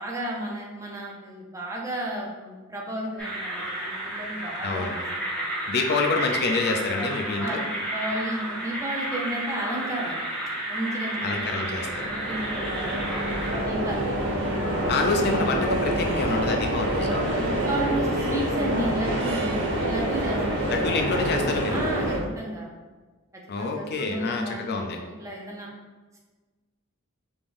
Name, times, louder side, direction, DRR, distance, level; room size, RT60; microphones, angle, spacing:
voice 1, 0.0-5.4 7.0-7.1 7.4-10.3 10.7-15.0 17.3-19.5 19.9-20.9 21.7-22.7 23.3-25.7 26.1-26.2, right 1 dB, 15° right, -2 dB, 0.7 m, -33 dB
sound 1, 3.2-13.6, right 1 dB, 5° left, 1.4 m, -32 dB
voice 2, 4.6-4.9 5.7-7.6 11.2-12.1 14.9-17.3 20.7-21.9 23.5-25.0, left 3 dB, 50° left, 3 dB, 0.5 m, -27 dB
sound 2, 11.3-22.2, right 1 dB, 50° right, 1.1 m, -27 dB
5.2 x 3.5 x 2.6 m, 1.3 s
head